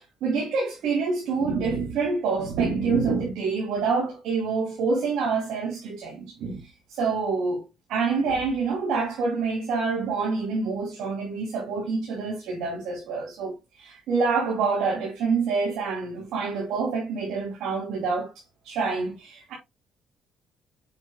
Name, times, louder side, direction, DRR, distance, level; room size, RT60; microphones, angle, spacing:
voice 1, 0.2-7.6 7.9-18.3 18.6-19.5, right 4 dB, 85° right, 2.8 m, -27 dB
7.0 x 6.6 x 2.2 m
cardioid pair, 90°, 0 cm